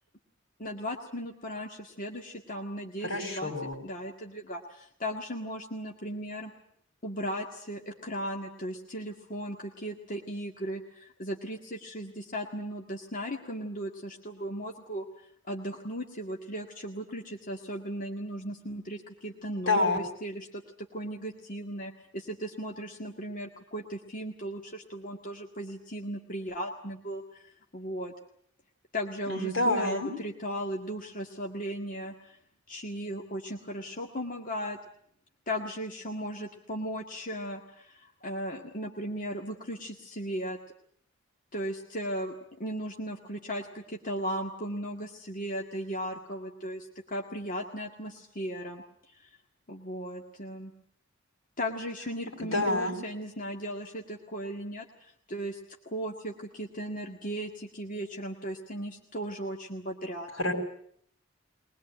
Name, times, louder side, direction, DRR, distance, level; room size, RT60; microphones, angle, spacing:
voice 1, 0.6-3.5 3.8-6.5 7.0-28.1 28.9-32.4 32.7-34.8 35.5-40.6 41.5-49.4 49.7-50.7 51.6-55.6 55.9-60.3, equal, 40° left, 1 dB, 1.9 m, -37 dB
voice 2, 3.0-3.7 19.7-20.0 29.3-30.1 52.4-53.0 60.4-60.5, left 2 dB, 80° left, 3 dB, 6.6 m, -27 dB
22.5 x 20.5 x 9.0 m, 0.66 s
head